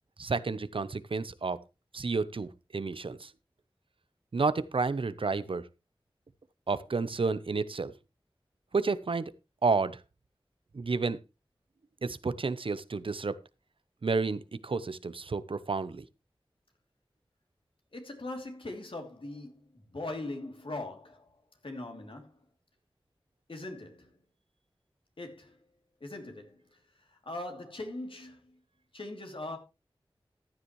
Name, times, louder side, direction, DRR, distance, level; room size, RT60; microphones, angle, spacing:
voice 1, 0.2-1.6 1.9-3.3 4.3-5.7 6.7-7.9 8.7-9.3 9.6-10.0 10.7-11.2 12.0-13.4 14.0-16.0, right 4 dB, 70° right, 0.8 m, -30 dB
voice 2, 17.9-19.6 19.9-21.3 21.6-22.3 23.5-24.1 25.2-25.6 26.0-26.6 27.2-28.4 28.9-29.6, left 2 dB, 70° left, 2.9 m, -40 dB
14.5 x 9.8 x 3.1 m
wide cardioid pair, 55°, 9 cm